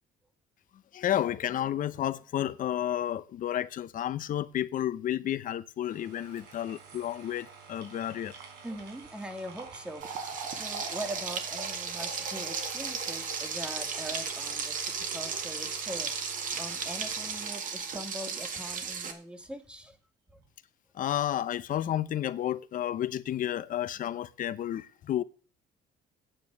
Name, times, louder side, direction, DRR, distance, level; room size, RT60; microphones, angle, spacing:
voice 1, 0.9-8.4 20.9-25.2, left 11 dB, 55° left, 0.8 m, -31 dB
sound 1, 5.8-19.1 19.4-19.5, right 4 dB, 90° right, 3.7 m, -45 dB
voice 2, 8.6-16.1 16.6-20.0 20.3-20.4, equal, 5° right, 1.7 m, -42 dB
Frying (food), 10.0-19.1, right 5 dB, 50° right, 1.9 m, -35 dB
9.0 x 9.0 x 6.5 m
cardioid pair, 110°, 17 cm